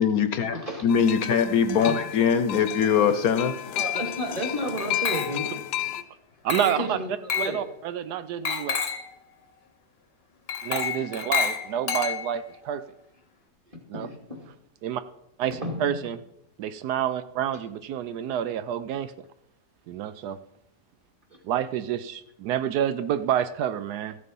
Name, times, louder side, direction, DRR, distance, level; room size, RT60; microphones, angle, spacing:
voice 1, 0.0-0.6 0.8-3.6, left 7 dB, 65° left, 10 dB, 1.1 m, -22 dB
voice 2, 0.5-0.9 1.8-2.0 3.8-5.4 6.6-7.1 7.4-7.6 13.9-14.4 15.5-15.9, equal, 20° right, 1 dB, 2.2 m, -31 dB
sound 1, 0.9-6.0, left 13 dB, 85° left, 1.3 m, -33 dB
Glass, 4.8-5.6 6.5-6.9 7.3-7.6 8.5-9.1 10.5-12.5, left 6 dB, 45° left, 1.0 m, -29 dB
voice 3, 6.4-7.0 7.3-8.8 10.6-12.8 13.9-14.1 14.8-15.0 15.4-16.2 16.6-19.1 19.9-20.4 21.4-24.2, right 10 dB, 80° right, 13 dB, 1.1 m, -28 dB
14.0 x 6.6 x 5.3 m, 0.81 s
omnidirectional pair, 1.7 m